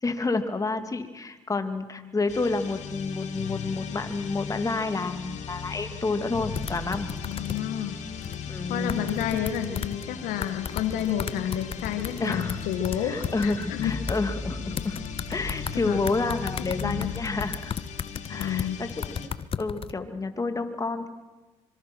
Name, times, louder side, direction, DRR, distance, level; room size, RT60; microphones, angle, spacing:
voice 1, 0.0-7.1 8.5-9.1 12.2-12.7 13.0-15.0 15.3-17.7 18.3-19.3 19.6-21.1, left 3 dB, 25° left, 8 dB, 2.7 m, -29 dB
sound 1, 2.3-19.3, left 6 dB, 55° left, 3.0 m, -37 dB
sound 2, 6.6-7.6 8.2-8.4 8.9-10.1 10.4-14.2 14.8-15.8 16.1-19.9, left 7 dB, 40° left, 1.0 m, -34 dB
voice 2, 7.3-8.0 8.7-13.9 15.9-16.0 16.6-17.1 18.3-18.8, left 10 dB, 75° left, 7 dB, 1.8 m, -30 dB
25.0 x 23.5 x 6.3 m, 1.2 s
supercardioid pair, 80°, 14 cm